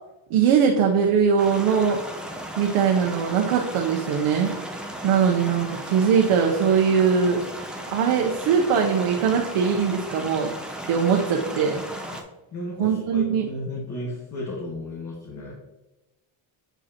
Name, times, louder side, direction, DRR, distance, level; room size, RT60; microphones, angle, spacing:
voice 1, 0.3-2.0 2.6-4.5 5.0-7.5 7.9-10.5 10.9-11.8 12.8-13.5, right 6 dB, 90° right, 1 dB, 0.9 m, -21 dB
sound 1, 1.4-12.2, right 1 dB, ahead, 0.7 m, -36 dB
voice 2, 12.5-15.5, left 1 dB, 35° left, -4 dB, 1.6 m, -34 dB
7.8 x 5.0 x 2.9 m, 1.0 s
cardioid pair, 120°, 49 cm